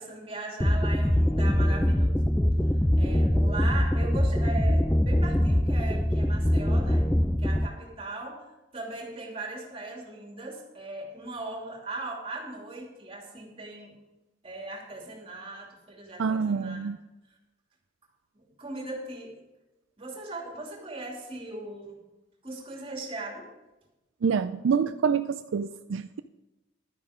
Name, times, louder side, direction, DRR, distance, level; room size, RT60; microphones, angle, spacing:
voice 1, 0.0-2.2 3.0-7.1 7.4-13.9 14.4-16.9 18.6-19.3 20.0-22.0 22.4-23.5, right 2 dB, 30° right, 2.7 m, -39 dB
sound 1, 0.6-7.7, equal, 5° left, 0.4 m, -23 dB
voice 2, 16.2-17.0 24.2-26.2, right 6 dB, 75° right, 0.4 m, -27 dB
11.5 x 9.6 x 5.1 m
head